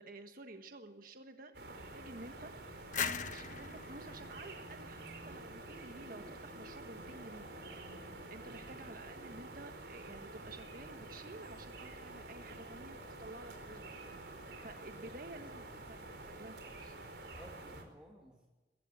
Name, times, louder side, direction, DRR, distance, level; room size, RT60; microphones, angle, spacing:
voice 1, 0.0-7.5 8.0-14.3 14.6-16.0 16.3-17.0, right 2 dB, 55° right, 6 dB, 1.3 m, -52 dB
sound 1, 1.5-17.8, right 2 dB, 70° right, 4.6 m, -49 dB
sound 2, 2.9-5.6, left 6 dB, 45° left, 1.2 m, -41 dB
voice 2, 17.3-18.5, equal, 5° right, -2 dB, 2.6 m, -57 dB
22.0 x 16.0 x 9.1 m, 1.2 s
head